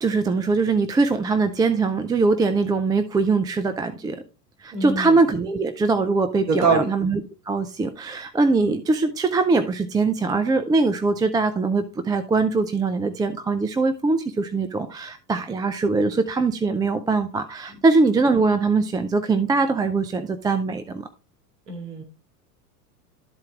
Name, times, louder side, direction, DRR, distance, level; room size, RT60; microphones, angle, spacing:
voice 1, 0.0-4.2 4.6-7.2 7.5-21.1, right 3 dB, 10° right, 0.4 m, -22 dB
voice 2, 4.7-5.2 6.5-6.9 21.7-22.0, right 4 dB, 80° right, 2.3 m, -23 dB
12.5 x 4.4 x 3.6 m
hypercardioid pair, 100°, 48 cm